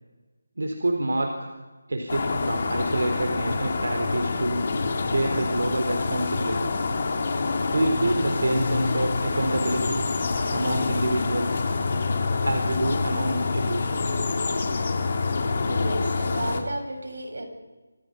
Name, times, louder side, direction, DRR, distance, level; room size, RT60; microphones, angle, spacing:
voice 1, 0.6-1.5 1.9-4.7 5.0-6.7 7.7-10.1 10.5-11.7 12.4-14.2, right 1 dB, 75° right, 4 dB, 4.1 m, -27 dB
sound 1, 2.1-16.6, left 3 dB, 30° left, 2.4 m, -26 dB
voice 2, 15.4-17.4, right 1 dB, 60° right, 4 dB, 7.0 m, -33 dB
27.5 x 27.0 x 5.4 m, 1.3 s
figure-of-eight pair, 180°, 0 cm